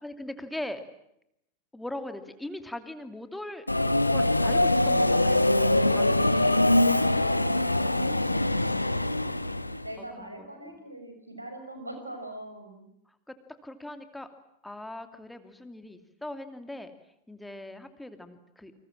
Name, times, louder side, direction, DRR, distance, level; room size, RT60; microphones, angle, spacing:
voice 1, 0.0-0.8 1.7-3.7 4.1-6.7 10.0-10.8 13.1-14.3 14.6-16.9 17.3-18.7, left 1 dB, 5° left, 9 dB, 2.7 m, -40 dB
Subway metro underground, 3.7-9.9, left 1 dB, 85° left, 1.2 m, -23 dB
voice 2, 6.0-9.3 9.8-12.8, right 1 dB, 85° right, 6 dB, 6.2 m, -43 dB
29.5 x 26.0 x 7.6 m, 0.79 s
figure-of-eight pair, 90°, 0 cm